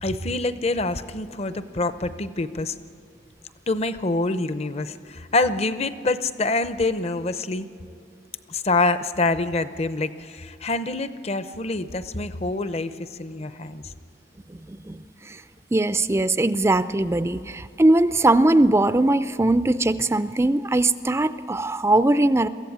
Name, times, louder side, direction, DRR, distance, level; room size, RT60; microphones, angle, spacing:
voice 1, 0.0-2.8 3.7-7.7 8.5-13.9, left 2 dB, 35° left, 12 dB, 0.7 m, -26 dB
voice 2, 14.7-15.4 15.7-22.5, right 2 dB, 15° right, 12 dB, 0.4 m, -20 dB
23.0 x 15.0 x 8.6 m, 2.7 s
head